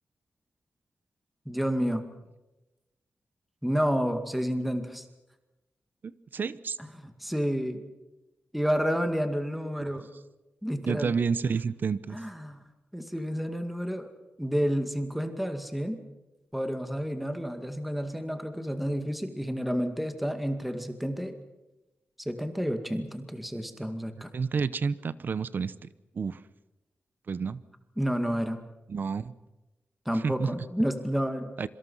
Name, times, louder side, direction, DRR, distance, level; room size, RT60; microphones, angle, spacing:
voice 1, 1.5-2.0 3.6-5.0 7.0-7.8 8.5-10.1 10.6-11.1 12.1-12.6 12.9-14.1 14.4-16.0 16.5-21.4 22.2-24.3 28.0-28.6 30.1-31.5, equal, ahead, 7 dB, 2.1 m, -30 dB
voice 2, 6.3-6.8 10.9-12.2 24.3-25.7 26.1-26.4 27.3-27.6 28.9-29.3 30.1-30.5 31.6-31.7, right 5 dB, 55° right, 17 dB, 0.9 m, -29 dB
26.0 x 25.0 x 5.7 m, 1.0 s
wide cardioid pair, 150°, 4 cm